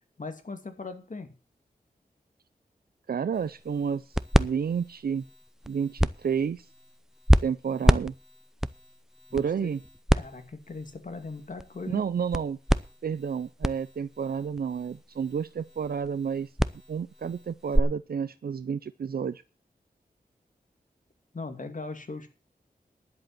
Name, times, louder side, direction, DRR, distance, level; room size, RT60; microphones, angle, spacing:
voice 1, 0.2-1.3 9.3-9.7 10.1-12.0 21.3-22.3, left 3 dB, 55° left, 6 dB, 2.5 m, -39 dB
voice 2, 3.1-5.2 5.7-6.7 7.4-8.1 9.3-9.8 11.9-12.6 13.0-16.5 16.9-19.4, right 7 dB, 80° right, 14 dB, 0.5 m, -30 dB
sound 1, 3.3-17.8, equal, 5° right, 0.6 m, -29 dB
11.0 x 7.9 x 7.6 m, 0.34 s
wide cardioid pair, 80°, 16 cm